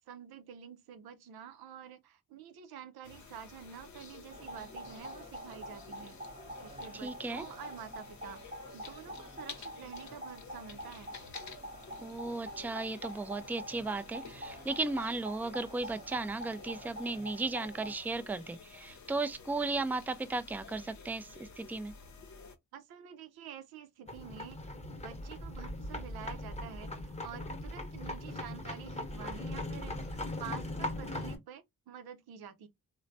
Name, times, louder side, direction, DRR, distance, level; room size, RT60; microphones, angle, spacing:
voice 1, 0.1-6.2 6.6-11.1 22.7-24.6 25.0-32.7, right 8 dB, 85° right, 0.6 m, -48 dB
sound 1, 3.0-22.6, left 5 dB, 50° left, 0.7 m, -52 dB
sound 2, 4.3-17.9, equal, 20° right, 0.8 m, -46 dB
voice 2, 6.9-7.4 12.0-21.9, right 3 dB, 5° right, 0.4 m, -35 dB
sound 3, 24.1-31.4, left 1 dB, 20° left, 1.0 m, -39 dB
3.0 x 2.1 x 2.6 m
supercardioid pair, 45°, 36 cm